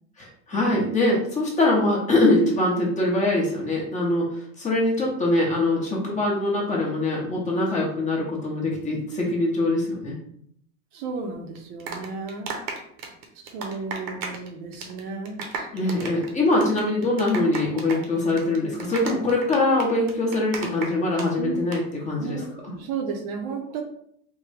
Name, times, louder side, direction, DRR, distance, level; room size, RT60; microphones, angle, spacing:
voice 1, 0.2-4.3 4.6-10.2 15.7-22.7, left 2 dB, 15° left, -3 dB, 0.7 m, -23 dB
voice 2, 10.9-12.5 13.4-16.1 16.6-16.7 21.3-21.6 22.2-23.8, right 4 dB, 55° right, 3 dB, 0.6 m, -34 dB
sound 1, 11.5-14.5 14.7-15.0 15.3-21.3 21.5-21.8, right 5 dB, 80° right, 0.9 m, -34 dB
3.6 x 2.1 x 3.2 m, 0.67 s
supercardioid pair, 140°, 43 cm